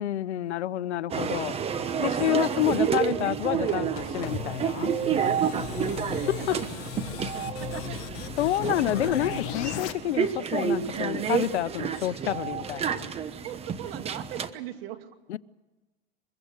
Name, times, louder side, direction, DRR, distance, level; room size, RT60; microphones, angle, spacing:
voice 1, 0.0-1.6 2.0-4.9 6.3-6.6 8.4-13.1 15.3-15.4, left 13 dB, 80° left, 0.9 m, -28 dB
sound 1, 1.1-14.5, right 7 dB, 20° right, 1.1 m, -29 dB
voice 2, 2.1-2.7 5.4-8.0 12.2-12.3 13.4-15.2, right 12 dB, 55° right, 2.6 m, -41 dB
sound 2, 3.7-9.9, left 14 dB, 40° left, 1.5 m, -37 dB
23.5 x 22.0 x 6.6 m
hypercardioid pair, 135°, 34 cm